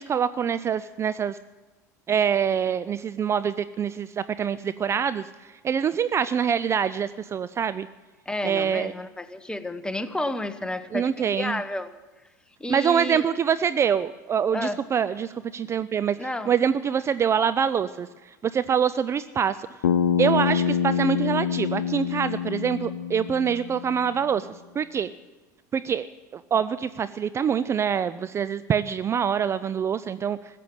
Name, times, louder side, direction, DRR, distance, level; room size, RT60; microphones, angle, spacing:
voice 1, 0.0-1.4 2.1-5.3 5.6-7.9 8.4-8.9 10.9-11.6 12.7-18.1 18.5-19.7 20.2-24.5 24.8-25.1 25.7-26.1 26.3-30.4, right 7 dB, 30° right, 14 dB, 0.4 m, -25 dB
voice 2, 8.3-11.9 12.6-13.2 14.5-14.8 16.2-16.5, left 1 dB, 10° left, 10 dB, 1.1 m, -31 dB
Bass guitar, 19.8-24.1, left 8 dB, 80° left, 0.7 m, -26 dB
15.0 x 7.6 x 9.9 m, 1.2 s
hypercardioid pair, 80°, 10 cm